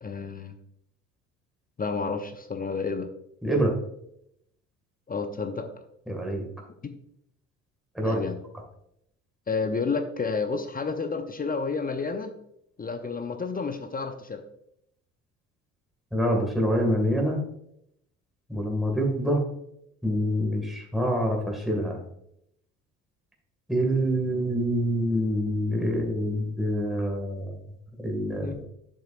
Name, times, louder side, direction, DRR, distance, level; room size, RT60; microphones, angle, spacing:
voice 1, 0.0-0.5 1.8-3.1 5.1-5.7 6.8-7.0 8.0-8.4 9.5-12.3 12.8-14.4 28.4-28.6, left 4 dB, 25° left, 8 dB, 0.7 m, -30 dB
voice 2, 3.4-3.7 6.1-6.4 8.0-8.2 16.1-17.4 18.5-19.4 20.0-22.0 23.7-27.6 28.0-28.6, equal, ahead, 0 dB, 2.1 m, -26 dB
8.3 x 6.1 x 2.6 m, 0.76 s
hypercardioid pair, 60°, 38 cm